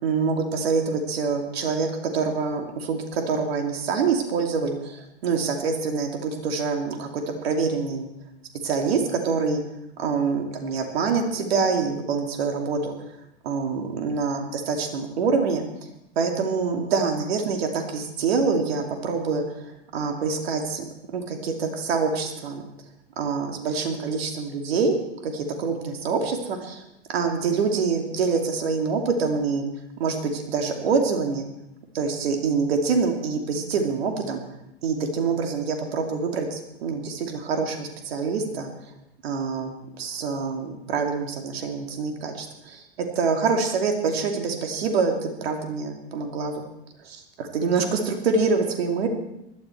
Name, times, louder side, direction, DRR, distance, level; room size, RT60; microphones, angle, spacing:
voice 1, 0.0-8.1 8.6-9.6 10.0-12.9 13.4-15.6 16.2-19.4 19.9-20.8 21.1-22.6 23.2-24.9 25.2-26.8 27.1-29.6 30.0-31.5 31.9-34.4 34.8-38.7 39.2-42.8 43.1-46.6 47.0-49.1, right 5 dB, 70° right, 4 dB, 2.8 m, -25 dB
20.0 x 12.5 x 4.6 m, 0.82 s
hypercardioid pair, 95°, 32 cm